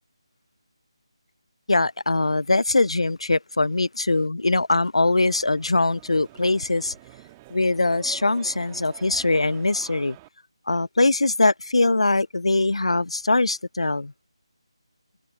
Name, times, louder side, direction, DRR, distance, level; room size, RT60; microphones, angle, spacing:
voice 1, 1.7-6.9 7.5-10.2 10.7-14.1, left 2 dB, 90° left, 0.5 m, -22 dB
sound 1, 5.3-10.3, right 20 dB, 15° right, 1.7 m, -47 dB
figure-of-eight pair, 165°, 3 cm